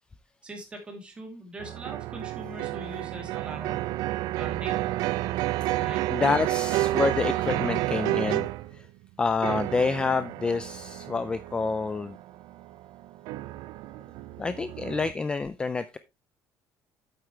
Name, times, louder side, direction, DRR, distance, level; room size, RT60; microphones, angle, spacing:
voice 1, 0.4-3.8 4.4-4.8 5.8-6.1, right 2 dB, 15° right, 2 dB, 2.7 m, -41 dB
sound 1, 1.6-8.8 9.4-15.1, right 16 dB, 75° right, 0.4 m, -30 dB
voice 2, 6.1-8.9 9.2-12.2 14.4-16.0, left 4 dB, 15° left, 13 dB, 0.4 m, -28 dB
8.5 x 8.0 x 3.2 m, 0.24 s
cardioid pair, 170°, 7 cm